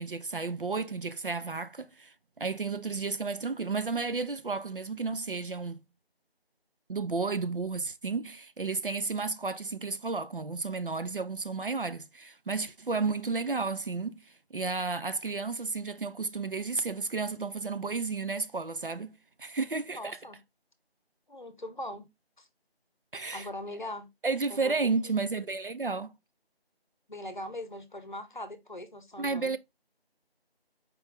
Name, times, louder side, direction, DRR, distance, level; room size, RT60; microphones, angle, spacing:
voice 1, 0.0-5.8 6.9-20.2 23.1-23.5 24.2-26.2 29.2-29.6, right 4 dB, 60° right, 0.4 m, -32 dB
voice 2, 19.9-20.4 21.3-22.1 22.4-22.5 23.3-24.1 24.5-24.7 25.0-25.3 27.1-29.6, left 1 dB, 50° left, 0.8 m, -41 dB
4.6 x 3.0 x 3.4 m
figure-of-eight pair, 175°, 31 cm